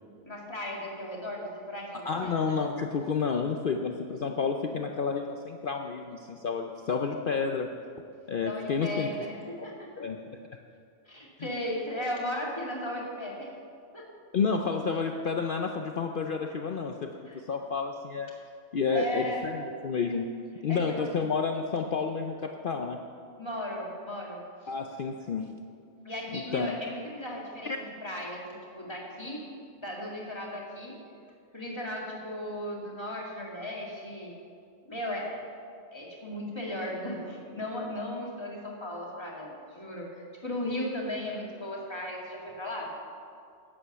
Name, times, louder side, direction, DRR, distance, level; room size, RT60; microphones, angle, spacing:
voice 1, 0.2-2.4 8.4-10.1 11.1-13.5 13.9-14.1 17.3-17.4 18.9-19.4 20.7-21.2 23.4-24.7 26.0-27.7 28.0-29.4 29.8-31.0 31.5-34.3 34.8-35.4 35.9-42.9, left 1 dB, 20° left, -3 dB, 2.1 m, -36 dB
voice 2, 2.1-7.7 8.3-9.1 9.6-9.7 10.0-10.2 11.4-11.5 14.3-17.1 17.5-18.3 18.7-20.3 20.6-23.0 24.7-25.5 26.3-26.8 27.6-27.8, left 5 dB, 55° left, 4 dB, 0.7 m, -30 dB
11.0 x 8.8 x 6.7 m, 2.3 s
omnidirectional pair, 1.3 m